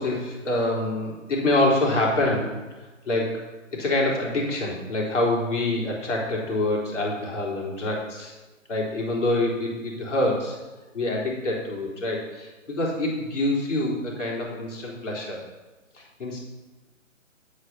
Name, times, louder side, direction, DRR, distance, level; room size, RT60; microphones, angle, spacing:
voice 1, 0.0-2.6 3.1-3.5 3.7-8.3 8.7-10.6 10.9-15.4 15.9-16.4, left 1 dB, 60° left, -2 dB, 3.8 m, -26 dB
8.8 x 8.1 x 5.7 m, 1.2 s
figure-of-eight pair, 150°, 40 cm